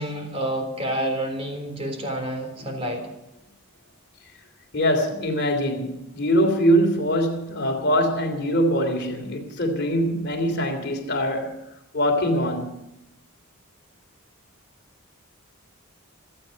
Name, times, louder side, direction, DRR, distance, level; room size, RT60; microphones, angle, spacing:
voice 1, 0.0-3.1, right 1 dB, 25° right, 3.7 m, -29 dB
voice 2, 4.7-11.6 11.9-12.8, equal, 50° left, 3.2 m, -23 dB
28.0 x 9.5 x 5.3 m
head